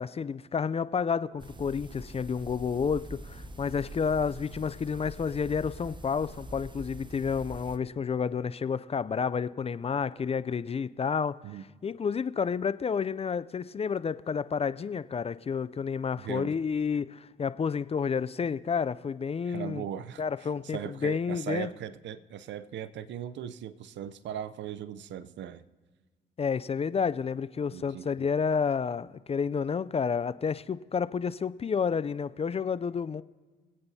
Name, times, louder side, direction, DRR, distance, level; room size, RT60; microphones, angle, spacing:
voice 1, 0.0-11.4 11.8-19.8 20.2-21.7 26.4-33.2, left 6 dB, 30° left, 16 dB, 0.4 m, -30 dB
sound 1, 1.4-7.8, right 2 dB, 25° right, 0.9 m, -44 dB
voice 2, 16.2-16.5 19.4-25.6 27.7-28.1, right 10 dB, 70° right, 16 dB, 0.6 m, -39 dB
24.5 x 8.8 x 2.8 m, 1.4 s
supercardioid pair, 55°, 19 cm